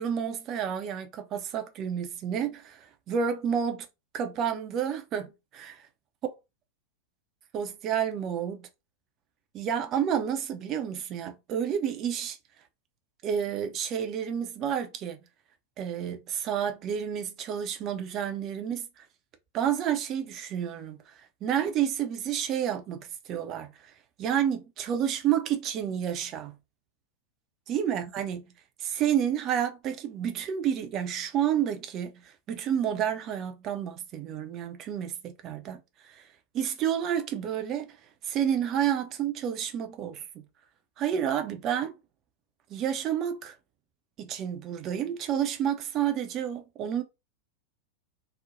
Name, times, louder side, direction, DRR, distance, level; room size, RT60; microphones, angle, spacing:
voice 1, 0.0-3.9 4.1-5.8 7.5-8.7 9.5-12.4 13.2-15.2 15.8-19.0 19.5-23.7 24.2-26.6 27.7-28.4 28.8-36.3 36.5-38.0 38.2-40.4 41.0-41.9 42.7-43.5 44.2-47.0, right 9 dB, 35° right, 0.5 m, -30 dB
3.0 x 2.1 x 2.5 m
figure-of-eight pair, 90°, 0 cm